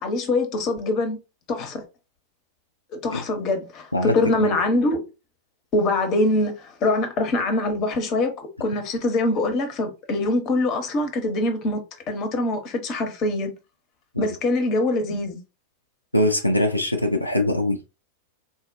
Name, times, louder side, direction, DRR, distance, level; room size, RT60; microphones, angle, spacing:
voice 1, 0.0-1.2 1.5-1.8 2.9-5.0 5.7-11.8 12.1-13.5 14.2-15.4, left 2 dB, 35° left, 0.8 m, -24 dB
voice 2, 3.9-4.5 14.1-14.4 16.1-17.8, left 1 dB, 85° left, 0.4 m, -22 dB
3.8 x 2.1 x 2.5 m
figure-of-eight pair, 90°, 0 cm